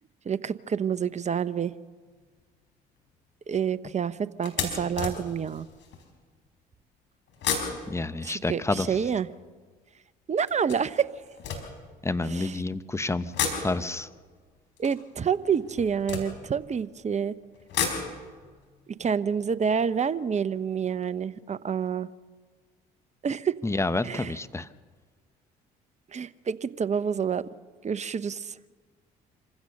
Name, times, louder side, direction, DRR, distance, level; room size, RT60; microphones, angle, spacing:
voice 1, 0.2-1.7 3.5-5.7 8.2-9.3 10.3-11.1 12.2-12.6 14.8-17.4 19.0-22.1 23.2-23.5 24.0-24.3 26.1-27.5 27.8-28.6, right 7 dB, 35° right, 14 dB, 0.9 m, -28 dB
sound 1, 2.1-2.4 3.0-3.1 3.5-3.6 4.4-6.1 7.3-9.6 10.5-12.4 13.2-17.0 17.4-20.5 20.8-20.9 21.1-21.2, left 6 dB, 65° left, 4.8 m, -35 dB
voice 2, 7.9-9.0 12.0-13.3 13.6-14.1 23.6-24.7, left 2 dB, 15° left, 13 dB, 1.1 m, -29 dB
26.5 x 15.5 x 6.6 m, 1.5 s
hypercardioid pair, 60°, 20 cm